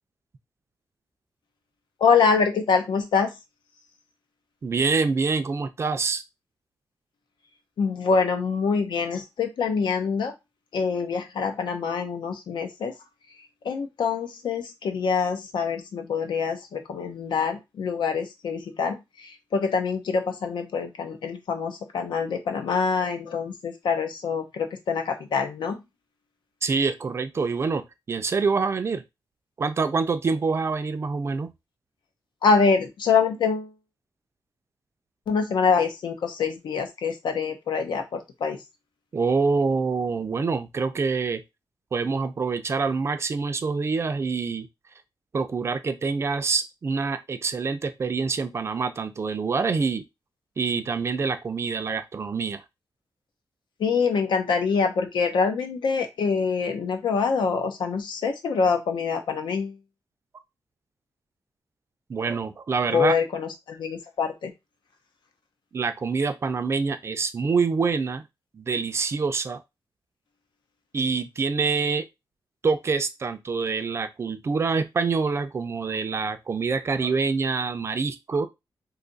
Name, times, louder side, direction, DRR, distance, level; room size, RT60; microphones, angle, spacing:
voice 1, 2.0-3.3 7.8-10.3 10.7-12.9 13.6-25.8 32.4-33.7 35.3-38.6 53.8-59.8 62.9-64.5, left 5 dB, 90° left, 0.7 m, -25 dB
voice 2, 4.6-6.2 26.6-29.0 29.6-31.5 39.1-41.4 41.9-44.7 45.3-50.0 50.6-52.6 62.1-63.1 65.7-68.2 68.5-69.6 70.9-72.1 72.6-78.5, right 4 dB, 35° right, 0.4 m, -26 dB
2.7 x 2.4 x 3.9 m
wide cardioid pair, 165°, 8 cm